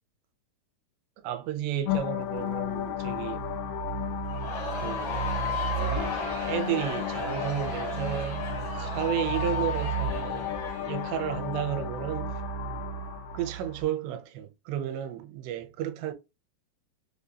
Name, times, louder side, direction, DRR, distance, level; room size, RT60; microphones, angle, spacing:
voice 1, 1.2-3.4 4.8-5.3 5.8-8.5 8.8-12.4 13.3-16.1, right 10 dB, 90° right, 2.8 m, -33 dB
sound 1, 1.9-13.8, left 3 dB, 85° left, 3.0 m, -32 dB
Crowd, 4.3-11.5, left 1 dB, 60° left, 1.3 m, -37 dB
6.6 x 2.7 x 2.2 m
omnidirectional pair, 4.9 m